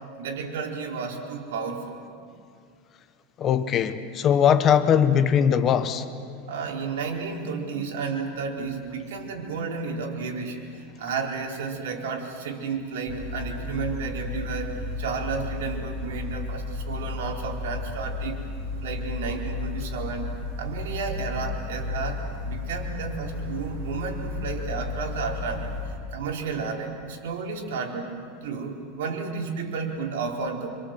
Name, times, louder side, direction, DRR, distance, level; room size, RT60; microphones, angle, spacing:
voice 1, 0.2-2.0 6.4-18.4 18.8-25.7 26.1-30.7, right 5 dB, 90° right, 4.3 m, -32 dB
voice 2, 3.4-6.0, left 8 dB, 25° left, 1.0 m, -20 dB
sound 1, 13.1-26.0, left 3 dB, 65° right, 7.5 m, -33 dB
27.0 x 25.5 x 7.8 m
supercardioid pair, 165°, 0 cm